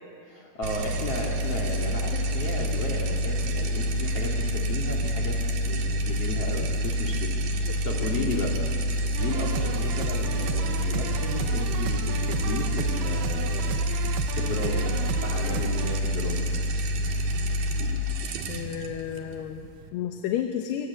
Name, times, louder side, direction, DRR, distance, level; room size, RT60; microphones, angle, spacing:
voice 1, 0.3-5.4 5.7-8.6 9.2-13.8 14.4-16.5, left 2 dB, 40° left, 1 dB, 3.1 m, -34 dB
sound 1, 0.6-19.9, equal, 65° right, 3.6 m, -28 dB
voice 2, 8.3-8.7 18.5-20.9, left 10 dB, 85° left, 6 dB, 3.1 m, -32 dB
sound 2, 9.1-16.0, right 7 dB, 85° right, 3.1 m, -35 dB
28.0 x 25.5 x 8.3 m, 2.5 s
omnidirectional pair, 4.6 m